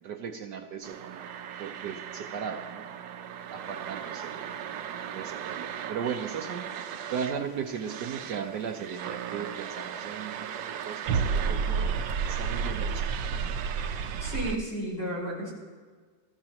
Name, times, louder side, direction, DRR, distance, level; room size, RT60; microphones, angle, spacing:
voice 1, 0.0-1.3 1.6-3.0 3.5-4.5 5.1-6.7 7.1-11.9 12.3-13.4, right 7 dB, 70° right, 4 dB, 1.4 m, -37 dB
sound 1, 0.8-14.6, right 6 dB, 85° right, 1.5 m, -33 dB
voice 2, 14.2-15.5, right 1 dB, 35° left, -5 dB, 5.5 m, -32 dB
22.5 x 14.5 x 3.0 m, 1.5 s
omnidirectional pair, 2.0 m